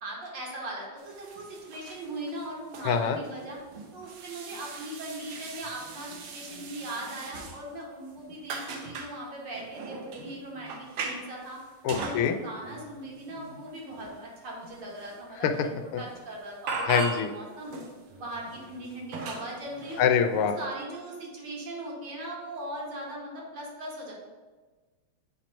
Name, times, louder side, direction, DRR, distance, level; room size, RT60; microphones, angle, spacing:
voice 1, 0.0-3.6 3.9-11.6 11.9-17.1 17.3-17.8 18.2-20.1 20.6-24.1, right 1 dB, 60° right, -2 dB, 1.9 m, -39 dB
sound 1, 1.0-7.8 8.1-9.1 9.5-12.3 12.6-15.2 15.5-15.7 16.0-16.2 16.7-17.4 17.7-20.6, right 3 dB, 85° right, 1.7 m, -40 dB
voice 2, 2.8-3.2 11.8-12.3 15.4-15.5 16.9-17.3 20.0-20.5, left 7 dB, 90° left, 6 dB, 1.5 m, -24 dB
7.8 x 3.0 x 5.1 m, 1.3 s
omnidirectional pair, 2.4 m